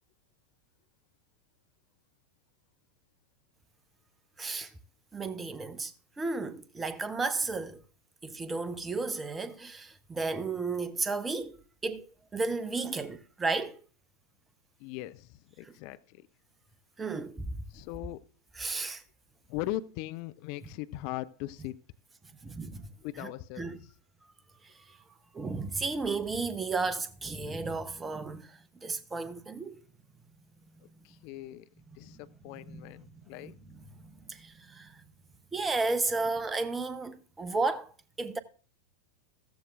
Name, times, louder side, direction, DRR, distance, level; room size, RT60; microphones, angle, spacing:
voice 1, 4.4-4.7 5.1-7.8 8.2-13.8 15.7-15.8 17.0-17.6 18.6-19.0 22.4-22.9 23.2-23.3 23.6-23.8 24.6-25.0 25.3-29.8 32.1-32.2 32.7-33.5 33.9-35.0 35.5-38.4, right 3 dB, 15° right, 0.8 m, -34 dB
voice 2, 14.8-16.3 17.7-18.2 19.5-21.8 23.0-23.9 30.8-31.7 31.9-33.5, left 16 dB, 45° left, 0.5 m, -40 dB
14.5 x 14.0 x 2.5 m
figure-of-eight pair, 90°, 0 cm